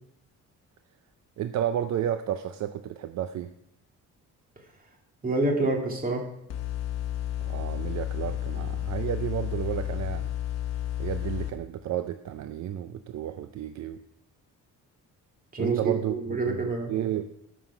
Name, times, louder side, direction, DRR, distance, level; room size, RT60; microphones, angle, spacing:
voice 1, 1.4-3.5 7.4-10.3 11.0-14.0 15.6-17.3, right 10 dB, 60° right, 10 dB, 0.6 m, -32 dB
voice 2, 5.2-6.2 15.5-16.9, right 3 dB, 25° right, 1 dB, 2.1 m, -27 dB
sound 1, 6.5-11.5, left 12 dB, 55° left, 1.0 m, -31 dB
11.5 x 6.3 x 5.7 m, 0.78 s
cardioid pair, 130°, 32 cm